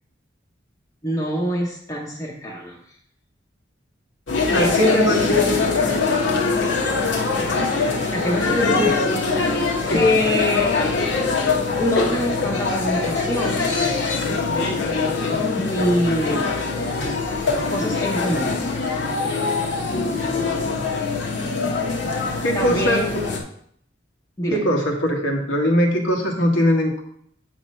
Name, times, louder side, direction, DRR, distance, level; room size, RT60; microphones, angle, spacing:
voice 1, 1.0-2.8 4.5-5.5 8.1-9.4 9.9-10.9 11.8-13.6 15.6-16.5 17.7-18.7 22.5-23.2 24.4-24.7, left 1 dB, 15° left, -3 dB, 0.8 m, -24 dB
sound 1, 4.3-23.4, left 4 dB, 65° left, 1.1 m, -23 dB
voice 2, 4.5-5.4 9.9-10.1 22.4-23.0 24.5-27.0, equal, 90° left, 0 dB, 1.5 m, -21 dB
7.9 x 3.1 x 5.4 m, 0.67 s
head